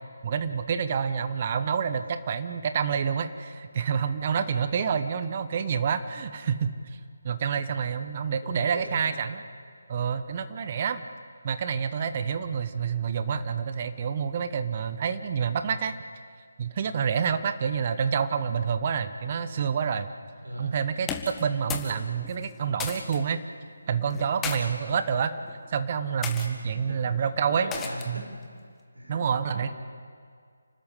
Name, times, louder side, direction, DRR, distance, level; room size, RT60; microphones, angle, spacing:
voice 1, 0.2-6.7 7.2-9.4 9.9-11.0 11.4-15.9 16.6-20.1 20.6-23.4 23.9-25.3 25.7-27.7 28.1-28.2 29.1-29.7, right 7 dB, 35° right, 10 dB, 1.1 m, -28 dB
voice 2, 8.4-9.1 20.4-20.8 26.7-28.3 28.9-29.7, equal, 75° right, 1 dB, 6.3 m, -39 dB
sound 1, 21.0-22.0 22.2-23.2 24.1-24.6 25.4-25.6 26.2-26.5 27.7-28.2, left 6 dB, 10° left, 1.3 m, -34 dB
29.5 x 13.0 x 8.3 m, 2.1 s
figure-of-eight pair, 150°, 0 cm